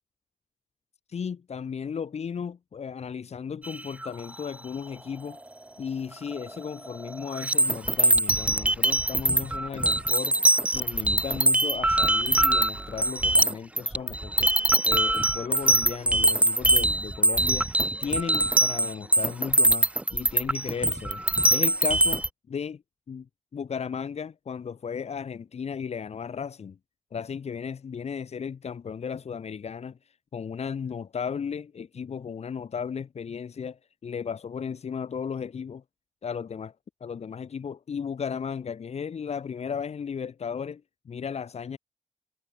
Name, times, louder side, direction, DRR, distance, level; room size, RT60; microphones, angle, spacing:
voice 1, 1.1-5.4 5.8-10.4 10.7-14.5 14.8-17.7 18.0-21.2 21.5-22.8 23.1-26.8 27.1-30.0 30.3-35.8 36.2-36.7 37.0-41.8, left 6 dB, 85° left, 2.8 m, -35 dB
sound 1, 3.6-4.2 6.3-6.6 6.9-22.3, right 1 dB, 10° right, 0.4 m, -23 dB
cardioid pair, 45°, 11 cm